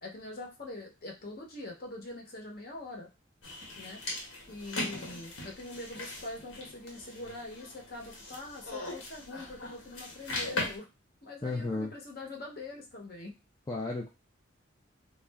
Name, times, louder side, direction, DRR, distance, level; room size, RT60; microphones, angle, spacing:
voice 1, 0.0-3.1 3.8-4.0 4.5-10.9 11.2-13.3, left 2 dB, 50° left, 1 dB, 0.8 m, -43 dB
sound 1, 3.4-10.8, left 2 dB, 85° left, 1.0 m, -40 dB
voice 2, 11.4-11.9 13.7-14.1, left 3 dB, 20° left, -2 dB, 0.3 m, -33 dB
2.4 x 2.1 x 3.3 m, 0.26 s
head